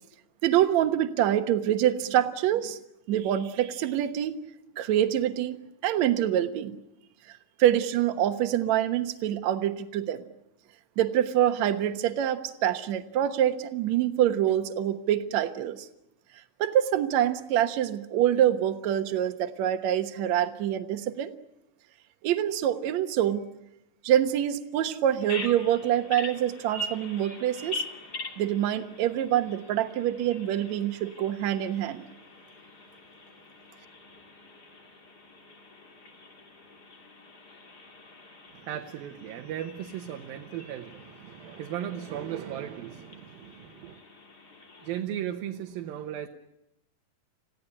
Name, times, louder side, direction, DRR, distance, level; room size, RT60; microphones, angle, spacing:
voice 1, 0.4-2.8 3.1-4.4 4.8-5.6 5.8-6.8 7.6-10.2 11.0-15.9 16.6-21.3 22.2-23.4 24.0-27.8 28.4-32.0, right 11 dB, 60° right, 8 dB, 2.2 m, -25 dB
Bird vocalization bird call bird song, 25.2-45.0, left 2 dB, 30° left, 2.8 m, -44 dB
voice 2, 38.5-44.0 44.8-46.3, right 10 dB, 85° right, 4 dB, 2.9 m, -36 dB
27.5 x 16.5 x 9.9 m, 0.86 s
omnidirectional pair, 4.0 m